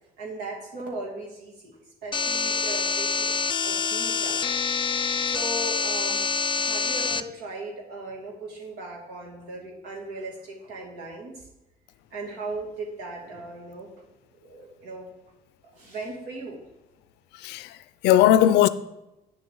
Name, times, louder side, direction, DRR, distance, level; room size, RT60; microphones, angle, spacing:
voice 1, 0.2-1.7 2.0-3.3 3.6-4.5 5.2-6.3 6.6-11.3 12.1-13.9 14.3-15.1 15.7-16.6, right 2 dB, 90° right, 2.5 m, -37 dB
sound 1, 2.1-7.2, left 5 dB, 30° left, 0.5 m, -26 dB
voice 2, 17.3-18.7, left 12 dB, 85° left, 0.5 m, -19 dB
9.3 x 6.9 x 3.8 m
cardioid pair, 110°, 17 cm